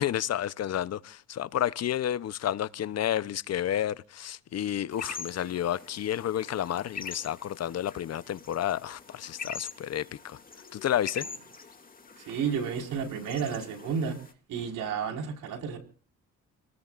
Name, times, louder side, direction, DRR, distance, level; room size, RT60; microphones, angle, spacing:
voice 1, 0.0-10.4 10.7-11.3, left 11 dB, 55° left, 0.8 m, -31 dB
sound 1, 4.9-14.3, left 5 dB, 30° left, 2.6 m, -44 dB
voice 2, 12.2-14.2 14.5-15.8, right 6 dB, 85° right, 5.0 m, -31 dB
29.5 x 19.0 x 2.5 m
cardioid pair, 90°, 30 cm